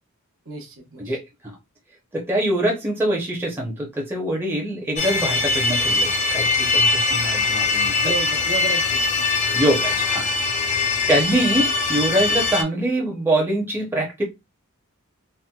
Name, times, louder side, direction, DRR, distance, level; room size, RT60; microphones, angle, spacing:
voice 1, 0.5-1.1 8.0-9.4, right 4 dB, 60° right, 0.9 m, -32 dB
voice 2, 1.0-1.6 2.1-7.9 9.5-10.3 11.1-14.2, right 1 dB, 10° right, 0.7 m, -24 dB
sound 1, 5.0-12.6, left 3 dB, 35° left, 0.5 m, -22 dB
4.2 x 2.1 x 2.3 m
head